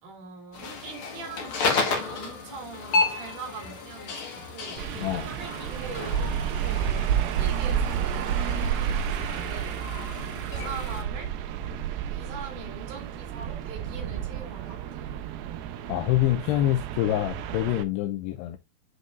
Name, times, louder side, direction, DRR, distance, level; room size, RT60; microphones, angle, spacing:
voice 1, 0.0-4.8 5.2-6.3 6.6-10.1 10.4-11.3 12.1-15.2, right 4 dB, 55° right, 3.5 m, -42 dB
sound 1, 0.5-11.0, left 3 dB, 60° left, 1.4 m, -32 dB
sound 2, 4.8-17.8, right 9 dB, 80° right, 2.3 m, -30 dB
voice 2, 5.0-5.3 15.9-18.6, left 14 dB, 80° left, 2.7 m, -26 dB
9.4 x 5.3 x 2.5 m
omnidirectional pair, 4.8 m